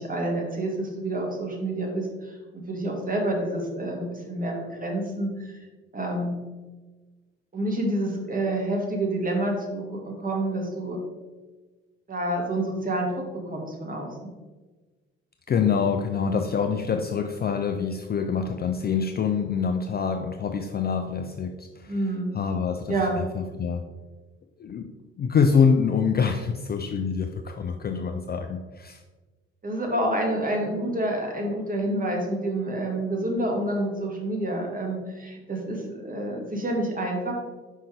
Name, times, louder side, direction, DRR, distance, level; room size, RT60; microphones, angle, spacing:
voice 1, 0.0-5.6 5.9-6.3 7.5-11.0 12.1-14.1 21.9-22.3 22.9-23.2 29.6-37.3, right 1 dB, 25° right, 0 dB, 1.8 m, -28 dB
voice 2, 15.5-22.0 22.3-23.9 24.6-24.9 25.2-29.0, left 6 dB, 30° left, 6 dB, 0.5 m, -25 dB
5.5 x 5.4 x 3.3 m, 1.3 s
figure-of-eight pair, 45°, 33 cm